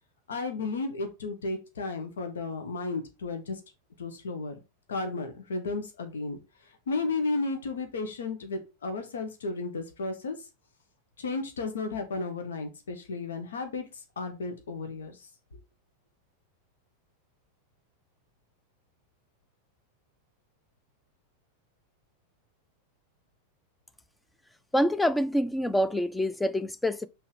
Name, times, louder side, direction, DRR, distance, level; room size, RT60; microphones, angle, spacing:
voice 1, 0.3-3.6 4.0-4.5 4.9-6.4 6.9-10.3 11.2-15.3, left 3 dB, 65° left, 1.2 m, -33 dB
voice 2, 24.7-27.1, equal, 5° left, 0.5 m, -26 dB
5.6 x 3.7 x 4.9 m
figure-of-eight pair, 90°, 0 cm